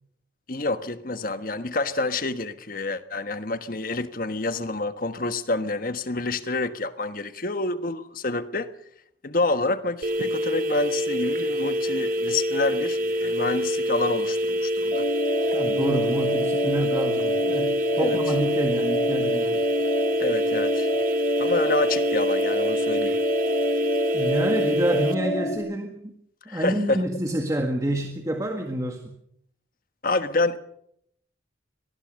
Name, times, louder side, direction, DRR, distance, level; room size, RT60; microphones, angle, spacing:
voice 1, 0.5-8.7 9.2-15.1 18.0-18.2 20.2-20.9 21.4-23.2 26.5-27.0 30.0-30.6, left 2 dB, 50° left, 1.4 m, -28 dB
sound 1, 10.0-25.1, equal, 50° right, 2.1 m, -25 dB
sound 2, 14.9-25.6, equal, 35° left, 4.7 m, -29 dB
voice 2, 15.5-19.6 24.1-26.1 26.5-29.1, right 1 dB, 20° right, 1.8 m, -28 dB
24.0 x 19.0 x 6.5 m
head